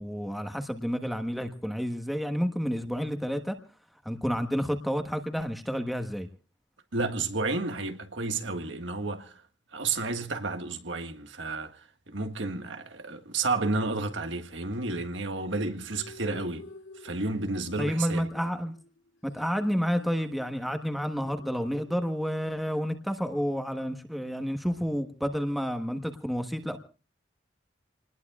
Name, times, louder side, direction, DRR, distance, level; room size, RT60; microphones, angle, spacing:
voice 1, 0.0-3.6 4.0-6.3 17.8-18.7 19.2-26.8, equal, ahead, 1.3 m, -30 dB
voice 2, 6.9-9.3 9.7-11.8 12.1-16.6 17.0-18.3, right 3 dB, 85° right, 1.7 m, -31 dB
sound 1, 15.7-22.7, left 2 dB, 90° left, 2.1 m, -51 dB
28.0 x 20.0 x 2.4 m
head